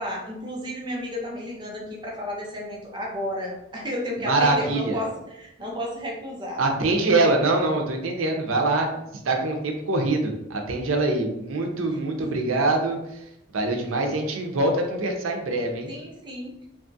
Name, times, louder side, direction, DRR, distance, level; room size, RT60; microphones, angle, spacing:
voice 1, 0.0-6.7 11.9-12.0 12.2-12.3 15.9-16.5, equal, 25° right, -1 dB, 0.5 m, -32 dB
voice 2, 4.3-5.0 6.6-8.9 9.3-13.0 13.5-15.9, right 2 dB, 85° right, 3 dB, 0.5 m, -24 dB
2.9 x 2.3 x 2.6 m, 0.84 s
head